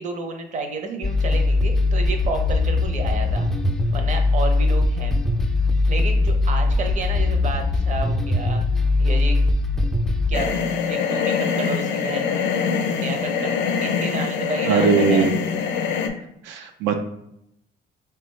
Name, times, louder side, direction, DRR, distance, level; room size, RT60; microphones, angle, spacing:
voice 1, 0.0-3.5 3.9-5.1 5.9-8.6 9.0-9.4 10.3-10.5 10.9-12.3 13.0-13.5 13.8-15.3, right 3 dB, 40° right, 4 dB, 0.6 m, -30 dB
sound 1, 1.0-10.3, left 2 dB, ahead, 0.3 m, -20 dB
sound 2, 10.3-16.1, left 6 dB, 75° left, 0.4 m, -24 dB
voice 2, 14.6-15.3 16.4-17.0, right 5 dB, 85° right, 5 dB, 0.4 m, -20 dB
3.9 x 2.2 x 3.1 m, 0.78 s
cardioid pair, 120°, 19 cm